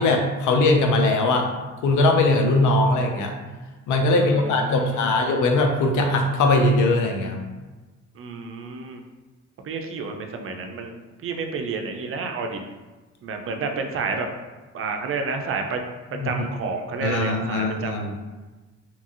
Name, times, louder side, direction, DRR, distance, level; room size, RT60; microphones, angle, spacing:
voice 1, 0.0-1.5 1.8-3.3 3.9-7.4 16.2-16.3 17.0-18.1, left 2 dB, 80° left, 3 dB, 0.6 m, -20 dB
voice 2, 4.1-5.2 8.2-9.0 9.6-12.6 13.2-14.3 14.7-15.8 16.2-18.1, right 4 dB, 45° right, 4 dB, 0.4 m, -30 dB
2.9 x 2.6 x 2.4 m, 1.2 s
cardioid pair, 90°, 30 cm